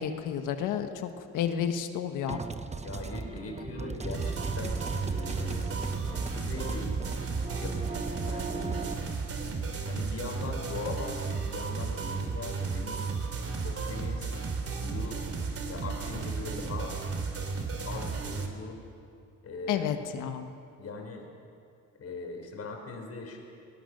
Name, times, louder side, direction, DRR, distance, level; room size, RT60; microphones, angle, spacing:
voice 1, 0.0-2.4 19.7-20.5, left 8 dB, 90° left, 7 dB, 1.5 m, -31 dB
sound 1, 2.3-8.9, right 3 dB, 20° right, 1.1 m, -37 dB
voice 2, 2.8-5.7 6.1-6.9 7.5-9.0 9.8-13.0 13.6-14.4 14.8-15.2 15.7-16.9 17.8-18.8 19.4-19.9 20.8-21.3 21.9-23.4, left 3 dB, 55° left, 2 dB, 4.9 m, -40 dB
sound 2, 4.1-18.5, right 4 dB, 50° right, 2.9 m, -34 dB
21.0 x 19.0 x 6.7 m, 2.6 s
cardioid pair, 90°, 30 cm